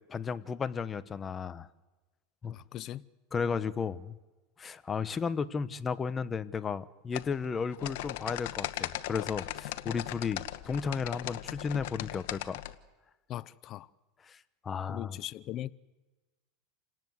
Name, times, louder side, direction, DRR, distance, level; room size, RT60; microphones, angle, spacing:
voice 1, 0.1-1.7 2.4-2.5 3.3-4.1 4.6-12.6 14.2-15.2, left 5 dB, 20° left, 1.1 m, -34 dB
voice 2, 2.4-3.0 13.3-13.9 14.9-15.7, left 13 dB, 45° left, 0.8 m, -39 dB
sound 1, 7.1-12.7, left 15 dB, 70° left, 1.3 m, -38 dB
28.5 x 18.5 x 8.1 m
supercardioid pair, 125°, 0 cm